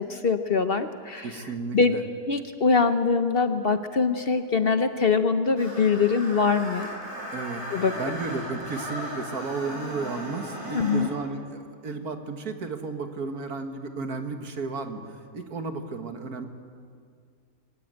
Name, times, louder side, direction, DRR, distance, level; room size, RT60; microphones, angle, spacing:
voice 1, 0.0-1.3 1.7-2.0 2.3-6.9 7.7-7.9 10.7-11.1, left 5 dB, 45° left, 8 dB, 0.9 m, -23 dB
voice 2, 1.2-2.0 7.3-7.6 8.0-16.5, right 4 dB, 80° right, 6 dB, 2.1 m, -33 dB
Screech, 5.6-11.1, equal, 50° right, 6.5 m, -36 dB
23.0 x 17.5 x 8.9 m, 2.2 s
omnidirectional pair, 1.6 m